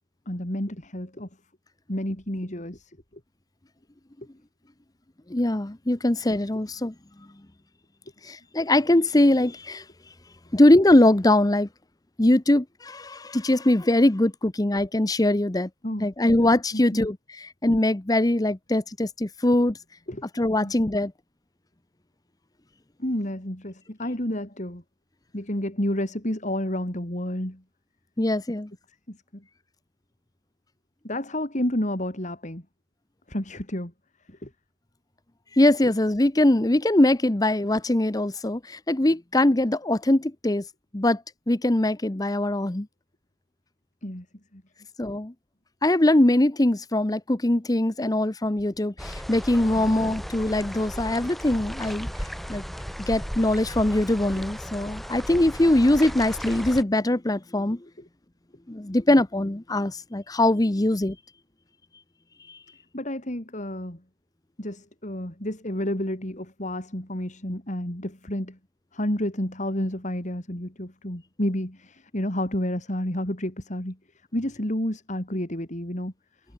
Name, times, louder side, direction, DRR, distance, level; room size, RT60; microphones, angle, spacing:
voice 1, 0.3-1.3 1.9-3.0 15.8-16.1 16.7-17.1 20.1-20.3 20.6-20.7 23.0-24.8 25.3-27.6 29.1-29.4 31.0-32.6 33.3-33.9 34.3-34.5 44.0-44.3 44.5-44.6 62.9-64.0 64.6-68.6 68.9-74.0 74.3-76.1, left 1 dB, 40° left, 3.5 m, -30 dB
voice 2, 5.3-6.9 8.2-9.8 10.5-11.7 12.2-15.7 16.0-19.8 20.4-21.1 28.2-28.7 35.5-40.6 40.9-42.9 45.0-45.3 45.8-52.1 52.5-52.6 53.1-57.9 58.7-61.2 62.5-62.6, left 1 dB, 20° left, 0.8 m, -22 dB
sound 1, 49.0-56.8, equal, ahead, 1.9 m, -36 dB
head